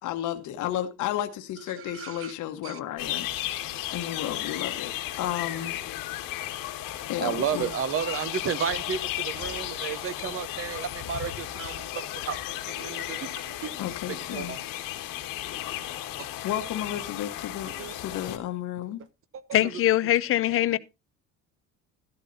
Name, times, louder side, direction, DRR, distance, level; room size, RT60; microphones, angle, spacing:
voice 1, 0.0-3.3 3.9-5.8 7.1-7.7 13.8-14.5 16.4-19.0, left 12 dB, 60° left, 1.3 m, -32 dB
voice 2, 1.9-2.3 2.6-2.8 7.2-12.4 12.8-13.7 14.1-14.6 16.2-16.3 17.8-17.9 20.7-20.8, right 8 dB, 40° right, 0.9 m, -32 dB
sound 1, 3.0-18.4, left 13 dB, 85° left, 1.8 m, -35 dB
voice 3, 19.5-20.8, left 13 dB, 40° left, 0.5 m, -23 dB
13.5 x 12.0 x 2.7 m
cardioid pair, 150°, 33 cm